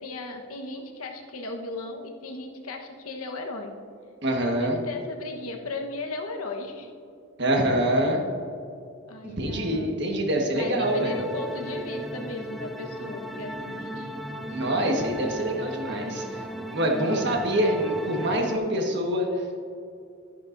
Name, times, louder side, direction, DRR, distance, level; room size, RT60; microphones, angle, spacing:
voice 1, 0.0-3.7 4.4-6.9 9.1-9.9 10.5-14.1 17.0-17.4, left 2 dB, 85° left, 2 dB, 1.2 m, -36 dB
voice 2, 4.2-4.8 7.4-8.2 9.2-11.2 14.5-16.4 16.7-19.5, right 1 dB, 50° right, 1 dB, 1.4 m, -25 dB
sound 1, 10.8-18.6, equal, ahead, 0.3 m, -36 dB
12.0 x 10.5 x 2.6 m, 2.4 s
head